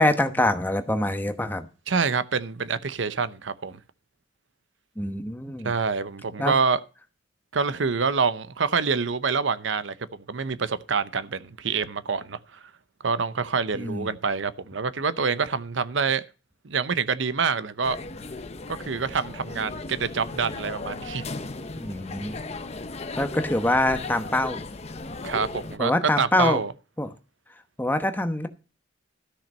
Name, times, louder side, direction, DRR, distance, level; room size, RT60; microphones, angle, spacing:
voice 1, 0.0-1.7 5.0-5.7 6.4-6.5 13.7-14.1 21.8-22.4 23.2-24.6 25.8-26.6 27.0-27.1 27.8-28.5, left 1 dB, 10° left, 1.0 m, -24 dB
voice 2, 1.9-3.8 5.6-6.8 7.5-12.6 13.0-16.2 16.6-18.0 18.7-21.3 25.2-26.7, right 5 dB, 75° right, 0.7 m, -26 dB
sound 1, 17.8-25.8, left 3 dB, 35° left, 0.7 m, -36 dB
13.0 x 6.0 x 5.4 m
head